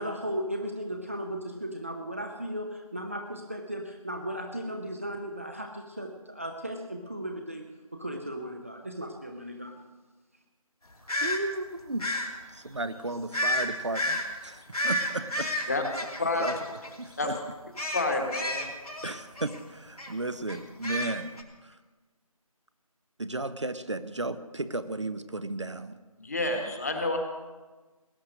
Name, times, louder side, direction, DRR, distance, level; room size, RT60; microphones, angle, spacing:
voice 1, 0.0-7.6 7.9-9.8, equal, 25° right, 3 dB, 0.7 m, -36 dB
sound 1, 11.1-11.4 12.0-12.3 13.3-13.7 13.9-14.3 14.7-16.9 17.2-17.4 17.8-19.6 20.0-20.1 20.5-21.4, left 1 dB, 80° left, 2.7 m, -31 dB
voice 2, 11.2-12.1 12.5-15.7 16.4-16.5 17.0-17.4 19.0-21.3 21.6-21.8 23.2-26.0, right 2 dB, 50° right, 11 dB, 0.8 m, -34 dB
voice 3, 17.9-18.7 26.2-27.2, left 2 dB, 25° left, 4 dB, 1.5 m, -29 dB
19.5 x 9.5 x 6.4 m, 1.3 s
figure-of-eight pair, 165°, 19 cm